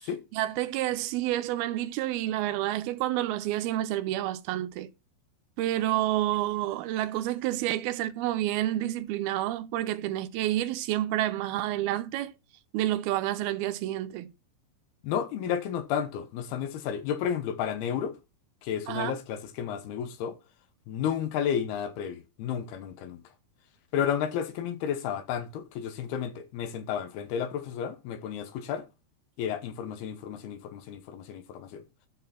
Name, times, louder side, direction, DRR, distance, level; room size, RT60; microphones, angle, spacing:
voice 1, 0.3-4.9 5.6-12.3 12.7-14.3 18.9-19.1, right 14 dB, 85° right, 2.6 m, -29 dB
voice 2, 15.0-18.2 18.6-20.4 20.9-23.2 23.9-28.9 29.4-31.8, left 8 dB, 80° left, 3.1 m, -32 dB
12.0 x 6.8 x 4.2 m
omnidirectional pair, 4.5 m